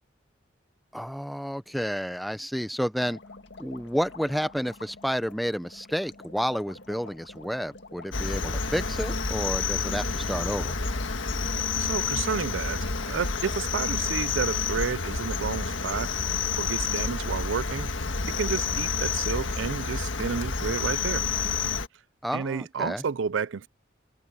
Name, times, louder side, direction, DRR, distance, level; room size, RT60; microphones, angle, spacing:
voice 1, 0.9-3.2 3.6-10.8 22.2-23.0, equal, ahead, 0.7 m, -30 dB
sound 1, 3.0-9.2, left 3 dB, 70° left, 1.9 m, -48 dB
Cricket, 8.1-21.9, left 4 dB, 90° left, 1.6 m, -29 dB
voice 2, 11.8-16.1 16.6-17.9 18.4-21.3 22.3-23.7, right 6 dB, 80° right, 0.5 m, -31 dB
head